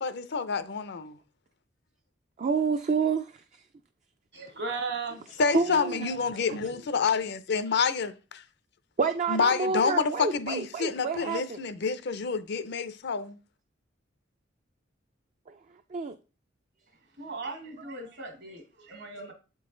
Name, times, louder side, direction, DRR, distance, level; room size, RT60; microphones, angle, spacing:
voice 1, 0.0-1.2 5.4-8.4 9.3-13.4, left 5 dB, 65° left, 0.6 m, -28 dB
voice 2, 2.4-3.3 5.5-6.1 6.5-6.6 7.8-7.9 9.0-11.6 15.5-15.6 15.9-16.2, right 5 dB, 40° right, 0.4 m, -28 dB
voice 3, 4.3-5.8 17.2-19.3, right 3 dB, 65° right, 1.5 m, -37 dB
7.6 x 3.9 x 3.8 m
head